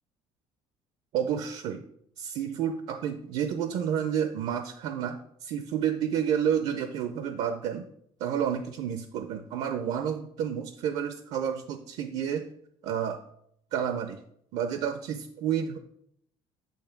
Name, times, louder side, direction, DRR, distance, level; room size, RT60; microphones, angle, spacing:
voice 1, 1.1-1.8 2.2-7.9 8.2-12.5 12.8-13.2 13.7-14.2 14.5-15.8, right 8 dB, 60° right, 8 dB, 0.5 m, -30 dB
8.7 x 3.0 x 5.8 m, 0.71 s
cardioid pair, 170°, 11 cm